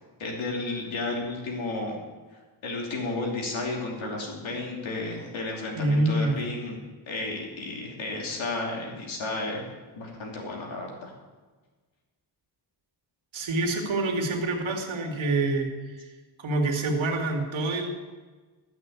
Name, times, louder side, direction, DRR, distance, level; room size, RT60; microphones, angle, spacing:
voice 1, 0.2-2.0 2.6-6.8 7.1-9.6 9.9-11.1, left 2 dB, 85° left, -1 dB, 2.9 m, -32 dB
voice 2, 5.7-6.3 13.3-15.7 16.0-16.1 16.4-17.9, right 2 dB, 85° right, 2 dB, 2.2 m, -26 dB
13.5 x 6.1 x 8.1 m, 1.3 s
cardioid pair, 95°, 46 cm